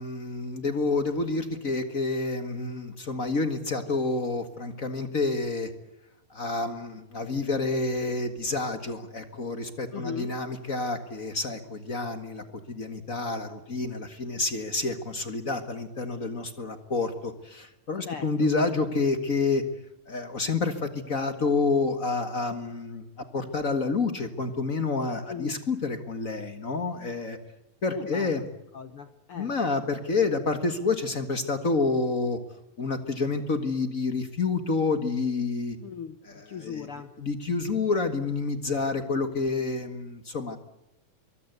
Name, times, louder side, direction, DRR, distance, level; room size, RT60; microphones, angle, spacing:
voice 1, 0.0-5.7 6.3-19.6 20.1-23.0 23.3-27.4 27.8-28.4 29.3-32.4 32.8-35.8 36.3-36.8 37.2-40.6, left 3 dB, 45° left, 9 dB, 1.1 m, -28 dB
voice 2, 9.9-10.3 18.0-18.5 25.3-25.6 27.9-28.3 28.7-29.5 35.8-36.2 36.4-37.1, left 7 dB, 70° left, 10 dB, 1.3 m, -38 dB
24.0 x 23.5 x 8.1 m, 0.89 s
omnidirectional pair, 4.2 m